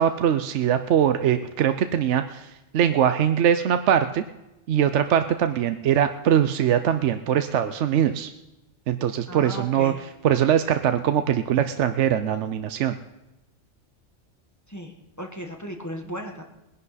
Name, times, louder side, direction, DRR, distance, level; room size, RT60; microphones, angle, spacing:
voice 1, 0.0-2.5 2.7-4.2 4.7-8.3 8.9-9.9 10.2-12.9, right 9 dB, 70° right, 9 dB, 0.9 m, -22 dB
voice 2, 9.3-10.0 14.7-16.4, equal, 15° left, 2 dB, 1.3 m, -36 dB
20.5 x 11.0 x 4.1 m, 0.94 s
omnidirectional pair, 1.3 m